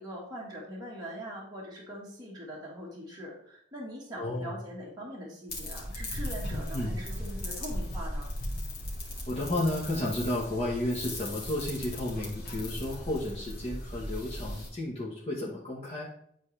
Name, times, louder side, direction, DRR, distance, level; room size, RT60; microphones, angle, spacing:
voice 1, 0.0-8.3, equal, 20° right, -6 dB, 1.6 m, -42 dB
voice 2, 4.2-4.5 6.7-7.0 9.3-16.1, left 1 dB, 35° left, -6 dB, 1.3 m, -32 dB
sound 1, 5.5-14.7, left 1 dB, 55° left, 2.0 m, -37 dB
9.7 x 4.1 x 3.3 m, 0.70 s
head